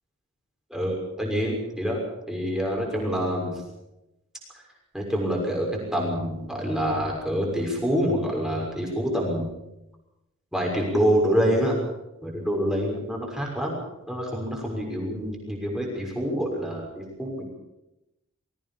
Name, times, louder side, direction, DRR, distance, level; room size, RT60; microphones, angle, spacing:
voice 1, 0.7-3.6 4.9-9.5 10.5-11.7 12.2-13.8 14.1-17.5, equal, 5° right, -1 dB, 6.3 m, -26 dB
22.0 x 17.0 x 7.2 m, 0.92 s
head